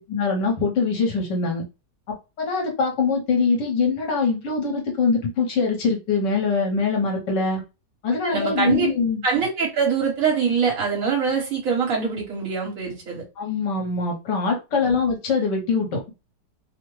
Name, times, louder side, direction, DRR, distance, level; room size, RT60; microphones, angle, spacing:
voice 1, 0.1-1.6 2.4-7.6 8.0-9.2 13.4-16.1, left 4 dB, 75° left, 1.5 m, -23 dB
voice 2, 8.2-8.9 9.2-13.2 14.7-14.9, right 6 dB, 50° right, 1.7 m, -24 dB
3.5 x 2.1 x 3.0 m
omnidirectional pair, 1.9 m